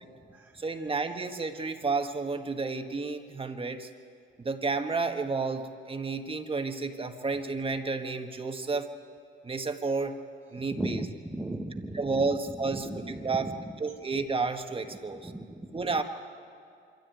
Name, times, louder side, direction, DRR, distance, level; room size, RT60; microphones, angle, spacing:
voice 1, 0.5-3.9 4.4-8.9 9.4-10.2 10.5-11.0 11.9-13.5 13.8-15.3 15.7-16.0, right 4 dB, 25° right, 6 dB, 1.6 m, -31 dB
voice 2, 10.8-12.3 12.7-13.5 15.2-15.8, right 1 dB, 10° right, 1 dB, 1.2 m, -36 dB
25.0 x 13.5 x 9.3 m, 2.3 s
cardioid pair, 90°, 20 cm